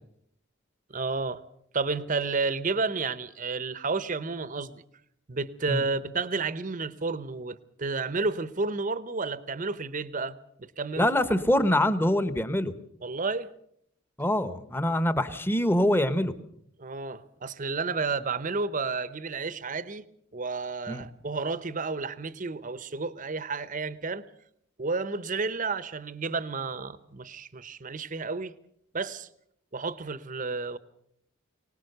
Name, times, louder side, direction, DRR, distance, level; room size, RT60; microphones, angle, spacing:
voice 1, 0.9-1.4 1.7-4.8 5.3-11.1 13.0-13.5 16.8-20.0 20.3-24.3 24.8-28.5 28.9-29.3 29.7-30.8, right 4 dB, 40° right, 0.8 m, -31 dB
voice 2, 11.0-12.7 14.2-16.3 20.9-21.1, left 1 dB, 10° left, 1.1 m, -24 dB
24.5 x 19.0 x 6.7 m
head